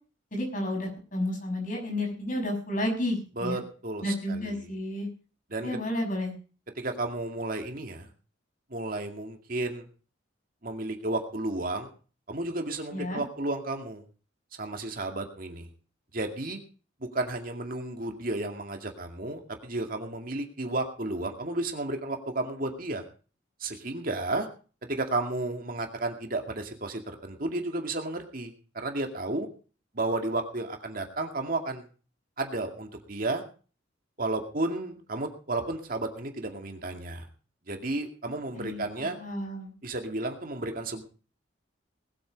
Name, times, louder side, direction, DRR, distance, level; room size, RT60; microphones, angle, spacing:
voice 1, 0.3-3.6 4.0-5.1 5.6-6.3 12.9-13.2 38.5-39.7, left 1 dB, 45° left, 1 dB, 6.6 m, -31 dB
voice 2, 3.4-4.7 5.5-5.8 6.8-8.1 8.7-9.9 10.6-11.9 12.3-14.0 14.6-15.7 16.1-16.6 17.0-23.0 23.6-24.5 24.8-29.5 29.9-31.8 32.4-33.4 34.2-37.3 37.7-39.2 39.8-41.0, right 2 dB, 45° right, 4 dB, 2.2 m, -32 dB
20.0 x 8.8 x 5.1 m, 0.38 s
head